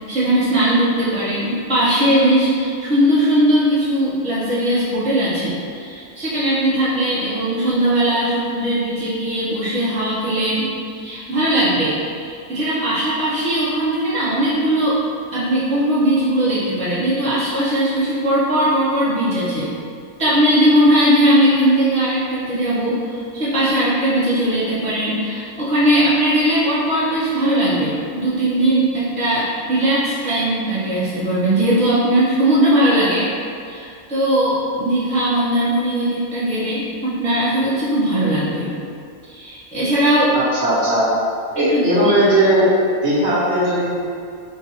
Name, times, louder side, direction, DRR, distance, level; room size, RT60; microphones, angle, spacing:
voice 1, 0.1-15.0 15.3-19.7 20.2-33.3 33.7-38.7 39.3-40.4 41.5-42.1, right 1 dB, 5° left, -11 dB, 0.6 m, -19 dB
voice 2, 40.3-41.1 41.5-42.7 43.0-43.9, right 1 dB, 50° right, -9 dB, 1.1 m, -17 dB
3.7 x 2.2 x 4.3 m, 2.3 s
omnidirectional pair, 1.6 m